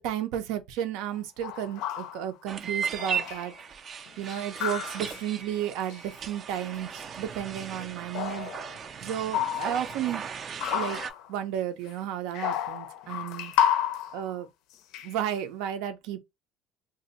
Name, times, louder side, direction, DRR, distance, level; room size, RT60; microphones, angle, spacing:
voice 1, 0.0-3.5 4.2-8.5 9.0-10.3 10.7-11.0 11.3-13.5 14.1-14.5 15.0-16.2, right 10 dB, 85° right, 0.5 m, -33 dB
sound 1, 1.1-1.2 1.4-2.3 3.0-3.6 4.1-5.3 5.9-6.1 6.7-6.9 8.1-8.9 9.3-10.1 10.6-11.3 11.9-12.0 12.3-14.3 14.9-15.3, left 10 dB, 70° left, 0.4 m, -31 dB
sound 2, 2.5-11.1, right 6 dB, 35° right, 0.3 m, -37 dB
2.6 x 2.1 x 3.9 m
cardioid pair, 165°, 0 cm